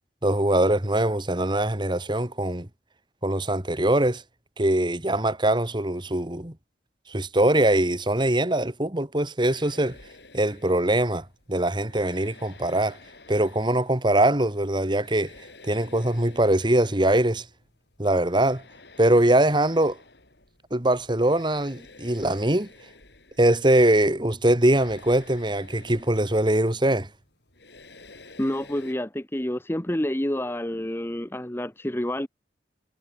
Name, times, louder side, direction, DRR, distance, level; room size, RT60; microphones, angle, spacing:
voice 1, 0.2-2.7 3.2-4.2 4.6-6.5 7.1-10.0 10.3-13.0 13.3-15.3 15.6-17.4 18.0-18.6 19.0-20.0 20.7-22.7 23.4-27.1, right 1 dB, 25° right, 2.1 m, -22 dB
sound 1, 9.4-28.9, left 3 dB, 70° left, 7.4 m, -51 dB
voice 2, 28.4-32.3, left 1 dB, 15° left, 1.1 m, -28 dB
head